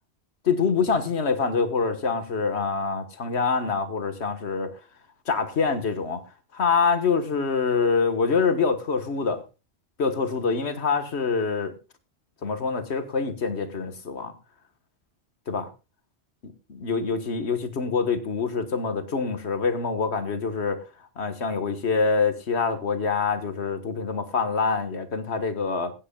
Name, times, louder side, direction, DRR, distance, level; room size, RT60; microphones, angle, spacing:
voice 1, 0.4-4.7 5.3-6.2 6.5-9.4 10.0-11.7 12.4-14.3 15.5-15.7 16.4-20.8 21.2-25.9, left 5 dB, 85° left, 1.7 m, -25 dB
21.5 x 9.6 x 2.3 m
omnidirectional pair, 1.1 m